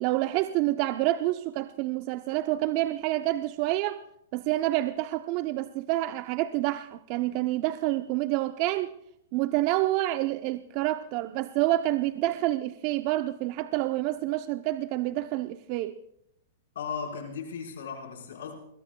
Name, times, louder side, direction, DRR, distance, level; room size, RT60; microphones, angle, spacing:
voice 1, 0.0-4.0 4.3-8.9 9.3-15.9, right 16 dB, 45° right, 0.7 m, -28 dB
voice 2, 16.7-18.6, left 6 dB, 75° left, 4.9 m, -36 dB
26.5 x 22.0 x 2.3 m
hypercardioid pair, 120°, 0 cm